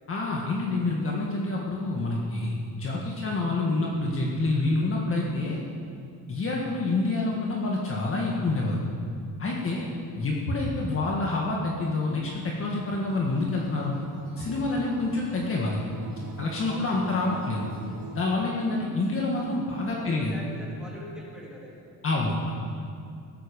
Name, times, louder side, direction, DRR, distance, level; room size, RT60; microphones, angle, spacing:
voice 1, 0.1-5.6 6.3-8.8 9.4-9.9 10.1-14.0 14.4-15.8 16.4-17.7 18.1-20.3 22.0-22.5, left 2 dB, 35° left, -2 dB, 1.7 m, -27 dB
voice 2, 9.4-10.0 16.7-16.9 19.8-21.9, equal, ahead, -5 dB, 3.2 m, -45 dB
Acoustic guitar, 13.1-18.2, right 2 dB, 60° right, 4.8 m, -43 dB
17.5 x 14.0 x 5.3 m, 2.4 s
cardioid pair, 155°, 39 cm